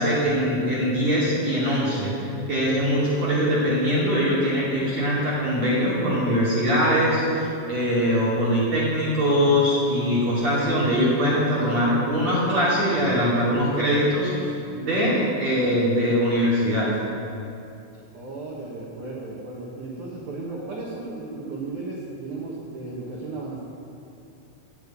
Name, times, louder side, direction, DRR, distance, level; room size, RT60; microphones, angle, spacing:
voice 1, 0.0-14.5 14.7-16.9 20.4-20.5, equal, 40° right, -8 dB, 2.9 m, -22 dB
voice 2, 18.1-23.6, right 3 dB, 80° right, -4 dB, 1.7 m, -35 dB
16.0 x 6.7 x 8.3 m, 2.6 s
omnidirectional pair, 5.9 m